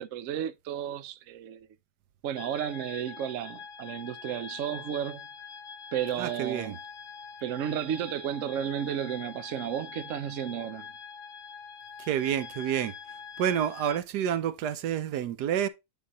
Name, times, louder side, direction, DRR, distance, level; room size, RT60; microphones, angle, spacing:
voice 1, 0.0-1.7 2.2-5.3 5.9-6.8 7.4-10.9, right 10 dB, 65° right, 0.9 m, -33 dB
sound 1, 2.3-14.0, left 6 dB, 85° left, 1.3 m, -44 dB
voice 2, 6.2-6.8 12.0-12.9 13.4-15.7, right 9 dB, 85° right, 1.3 m, -29 dB
9.4 x 3.4 x 4.1 m
omnidirectional pair, 1.7 m